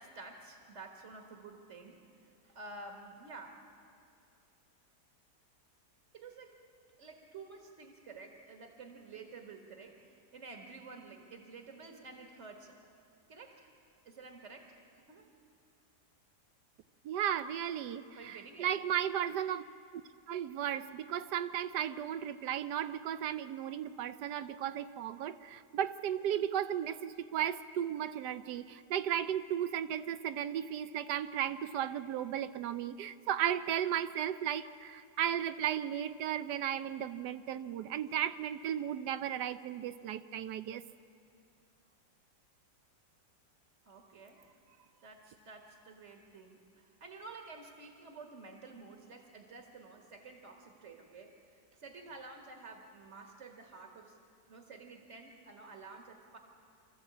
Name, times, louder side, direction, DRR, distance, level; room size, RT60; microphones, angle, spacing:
voice 1, 0.0-2.0 2.4-3.6 6.1-6.6 7.0-12.8 13.3-13.7 14.0-15.3 18.1-18.7 43.9-44.5 45.0-54.2 54.5-56.4, right 3 dB, 45° right, 2 dB, 1.8 m, -51 dB
voice 2, 17.0-19.6 19.9-20.0 20.3-40.8, right 10 dB, 80° right, 12 dB, 1.3 m, -35 dB
25.5 x 14.0 x 8.4 m, 2.4 s
omnidirectional pair, 1.8 m